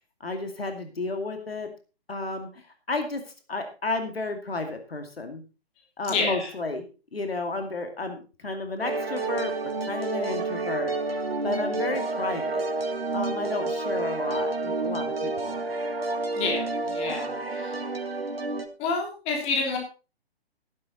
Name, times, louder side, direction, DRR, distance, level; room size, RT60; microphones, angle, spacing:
voice 1, 0.2-1.7 2.1-2.6 2.9-3.2 3.5-5.4 6.0-6.8 7.1-9.5 9.8-10.9 11.4-12.6 13.1-15.6, left 3 dB, 65° left, 6 dB, 2.4 m, -32 dB
voice 2, 6.1-6.5 16.3-17.8 18.8-19.8, left 4 dB, 20° left, 1 dB, 3.2 m, -29 dB
sound 1, 8.8-18.7, right 3 dB, 70° right, 1.9 m, -29 dB
12.0 x 11.5 x 4.1 m, 0.32 s
figure-of-eight pair, 135°, 32 cm